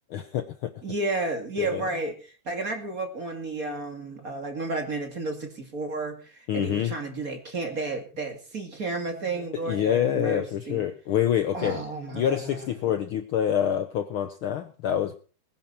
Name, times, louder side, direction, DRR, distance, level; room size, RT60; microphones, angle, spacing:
voice 1, 0.1-0.7 1.6-1.8 6.5-6.9 9.7-11.8 12.1-15.2, left 10 dB, 85° left, 10 dB, 1.1 m, -26 dB
voice 2, 0.8-10.9 11.5-12.9, right 2 dB, 30° right, 4 dB, 2.4 m, -32 dB
20.5 x 10.5 x 4.5 m, 0.37 s
omnidirectional pair, 3.5 m